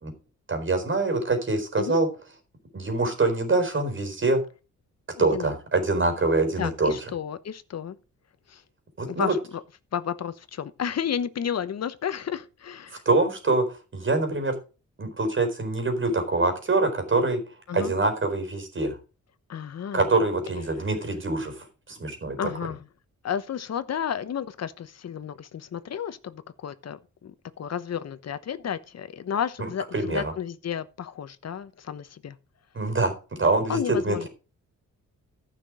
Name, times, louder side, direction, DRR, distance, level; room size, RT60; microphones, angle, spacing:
voice 1, 0.5-2.1 2.7-4.4 5.2-7.1 9.0-9.3 13.1-14.5 15.0-17.4 17.7-19.0 19.9-22.5 29.6-30.3 32.7-34.3, right 3 dB, 40° right, 4.2 m, -25 dB
voice 2, 5.1-5.5 6.6-8.0 8.5-8.6 9.1-9.4 9.9-13.0 17.7-17.9 19.5-20.1 22.4-22.8 23.2-32.4 33.7-34.3, left 8 dB, 55° left, 1.1 m, -32 dB
14.5 x 6.1 x 4.9 m
cardioid pair, 95°, 30 cm